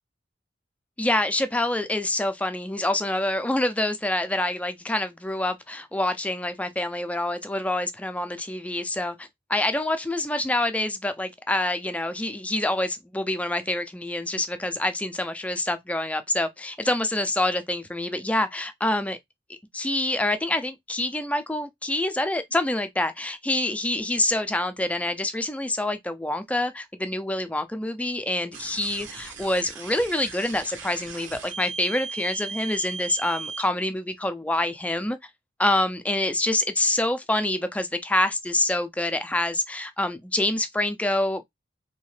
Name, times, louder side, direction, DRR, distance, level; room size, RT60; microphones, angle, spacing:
voice 1, 1.0-19.2 19.7-35.2 35.6-41.4, left 1 dB, 5° left, 0.4 m, -26 dB
sound 1, 28.5-33.6, right 5 dB, 85° right, 1.3 m, -37 dB
3.2 x 2.8 x 3.1 m
head